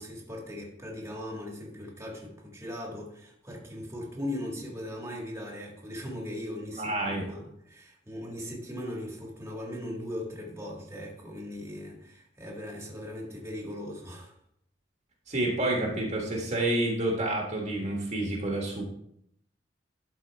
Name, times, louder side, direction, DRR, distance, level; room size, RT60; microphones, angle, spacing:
voice 1, 0.0-14.3, left 1 dB, 15° right, -1 dB, 1.6 m, -39 dB
voice 2, 6.7-7.3 15.3-18.8, right 1 dB, 40° right, -1 dB, 1.5 m, -29 dB
12.0 x 4.2 x 3.4 m, 0.72 s
head